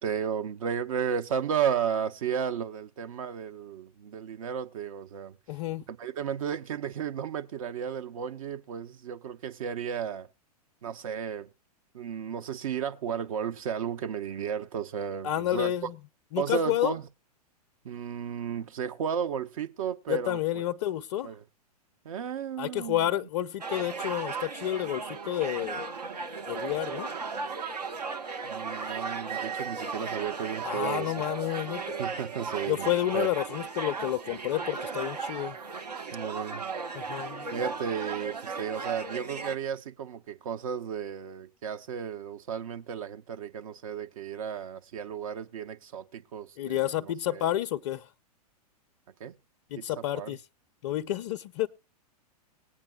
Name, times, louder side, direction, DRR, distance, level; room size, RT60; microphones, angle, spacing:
voice 1, 0.0-5.4 5.9-10.3 10.8-11.5 11.9-15.9 16.4-17.1 17.8-20.7 21.2-21.4 22.0-23.1 28.4-31.2 32.0-33.3 36.1-36.6 37.5-47.5 49.2-49.3 49.8-50.4, right 7 dB, 55° right, 0.7 m, -33 dB
voice 2, 5.5-5.8 15.2-15.9 16.3-17.0 20.1-21.3 22.6-25.8 26.5-27.1 30.6-32.0 32.7-35.6 37.0-37.5 46.6-48.0 49.7-50.4 50.8-51.7, left 13 dB, 45° left, 0.4 m, -30 dB
sound 1, 23.6-39.6, right 4 dB, 80° right, 1.0 m, -36 dB
20.0 x 8.8 x 2.2 m
figure-of-eight pair, 105°, 20 cm